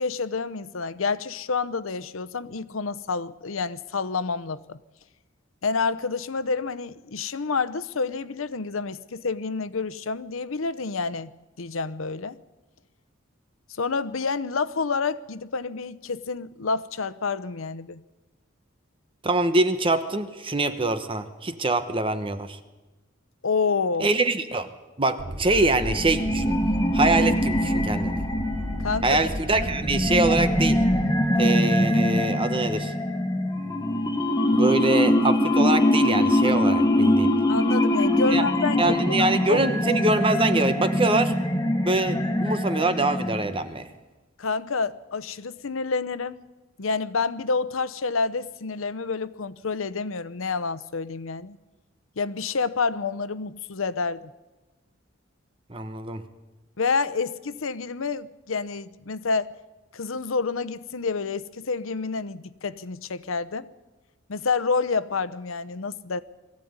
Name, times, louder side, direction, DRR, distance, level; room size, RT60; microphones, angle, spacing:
voice 1, 0.0-4.8 5.6-11.3 11.6-12.4 13.7-18.0 23.4-24.1 28.8-29.3 37.5-39.6 44.4-46.4 46.8-51.6 52.2-54.3 56.8-59.5 59.9-63.7 64.3-66.2, left 4 dB, 85° left, 0.8 m, -28 dB
voice 2, 19.2-22.6 24.0-24.7 25.0-26.6 26.9-28.2 29.0-30.8 31.4-32.9 34.5-37.3 38.3-38.4 38.8-41.3 41.8-43.9 55.7-56.2, right 2 dB, 25° right, 1.1 m, -24 dB
sound 1, 25.2-31.0, equal, 85° right, 3.4 m, -33 dB
sound 2, 25.8-43.7, left 1 dB, 20° left, 1.5 m, -23 dB
21.5 x 15.0 x 9.6 m
head